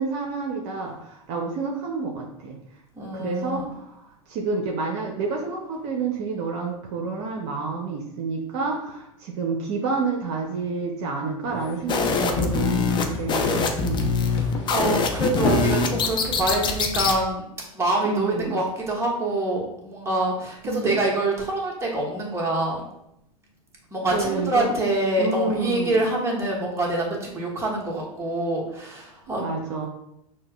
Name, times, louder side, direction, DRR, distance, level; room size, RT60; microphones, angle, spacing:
voice 1, 0.0-2.6 3.1-4.0 4.3-14.1 18.0-18.6 20.6-21.0 24.1-24.8 25.2-26.0 29.4-29.9, right 4 dB, 55° right, 0 dB, 0.7 m, -29 dB
voice 2, 2.9-3.7 13.2-13.4 14.3-17.5 17.7-22.8 23.9-29.4, right 2 dB, 15° right, -3 dB, 1.2 m, -26 dB
sound 1, 11.4-16.5, left 3 dB, 55° left, 0.8 m, -32 dB
sound 2, 11.9-17.2, left 4 dB, 25° left, 0.5 m, -24 dB
6.2 x 2.2 x 2.3 m, 0.80 s
hypercardioid pair, 95°, 19 cm